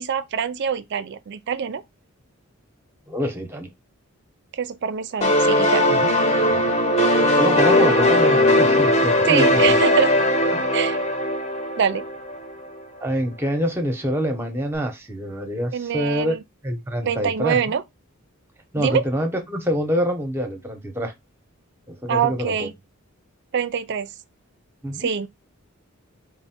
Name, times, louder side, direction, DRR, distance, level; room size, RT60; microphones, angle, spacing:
voice 1, 0.0-1.8 4.5-5.9 9.3-10.1 10.7-11.0 11.8-12.0 15.7-16.4 17.0-17.8 18.8-19.0 22.1-22.7 23.5-24.1 25.0-25.3, right 7 dB, 55° right, 0.4 m, -24 dB
voice 2, 3.1-3.7 5.9-6.1 6.5-6.7 7.3-9.8 13.0-16.4 16.6-17.6 18.7-21.1 21.9-22.7 24.8-25.1, equal, 10° right, 0.8 m, -26 dB
sound 1, 5.2-12.7, left 1 dB, 30° left, 0.9 m, -19 dB
4.1 x 2.1 x 4.3 m
head